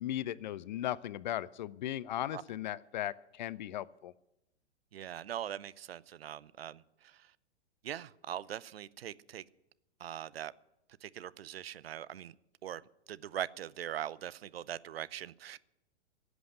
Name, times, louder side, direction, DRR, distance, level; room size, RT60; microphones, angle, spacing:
voice 1, 0.0-4.1, left 12 dB, 45° left, 0.5 m, -37 dB
voice 2, 4.9-7.3 7.8-9.4 10.0-10.5 11.0-12.3 12.6-12.8 13.1-15.6, right 10 dB, 60° right, 0.6 m, -41 dB
16.0 x 8.1 x 9.2 m
figure-of-eight pair, 110°, 34 cm